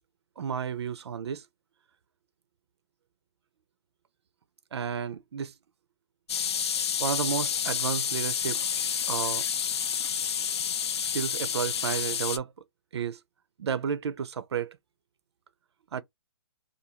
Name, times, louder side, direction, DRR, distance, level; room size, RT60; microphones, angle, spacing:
voice 1, 0.4-1.4 4.7-5.5 7.0-8.6 9.1-9.4 11.1-12.5 12.9-13.2 13.6-14.8 15.9-16.0, right 7 dB, 90° right, 0.5 m, -32 dB
sound 1, 6.3-12.4, left 8 dB, 85° left, 0.4 m, -29 dB
2.5 x 2.3 x 2.8 m
hypercardioid pair, 180°, 14 cm